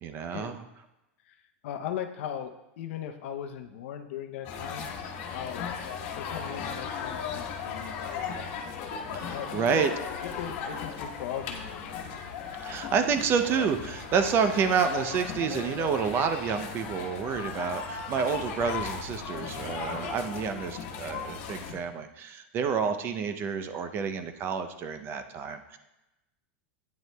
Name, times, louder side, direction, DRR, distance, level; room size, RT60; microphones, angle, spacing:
voice 1, 0.0-0.6 9.1-9.9 12.6-25.8, right 6 dB, 35° right, 9 dB, 0.5 m, -29 dB
voice 2, 1.2-4.9 5.3-5.6 6.2-8.3 9.2-12.2, left 9 dB, 70° left, 7 dB, 0.7 m, -39 dB
sound 1, 4.4-21.7, left 6 dB, 55° left, 1.2 m, -37 dB
9.3 x 7.8 x 2.2 m, 0.95 s
supercardioid pair, 140°, 7 cm